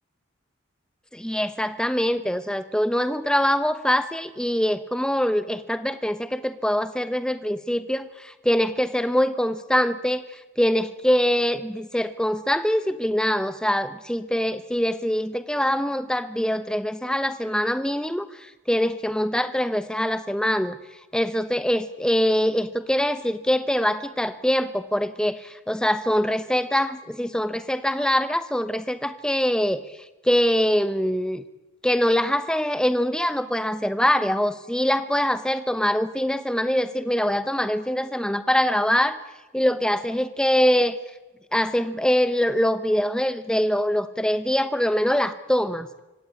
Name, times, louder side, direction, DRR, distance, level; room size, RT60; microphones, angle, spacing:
voice 1, 1.1-20.8 21.1-29.8 30.2-31.4 31.8-39.2 39.5-41.0 41.5-45.9, equal, 5° left, 13 dB, 0.8 m, -23 dB
25.0 x 17.5 x 9.8 m, 1.1 s
head